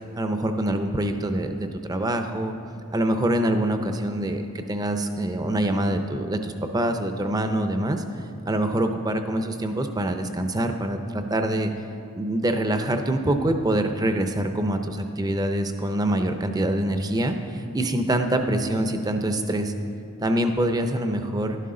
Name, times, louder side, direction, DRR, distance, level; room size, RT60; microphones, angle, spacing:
voice 1, 0.2-2.6 2.9-8.0 8.5-11.7 12.1-19.7 20.2-21.6, right 1 dB, 15° right, 7 dB, 0.5 m, -25 dB
12.0 x 11.0 x 3.8 m, 2.6 s
head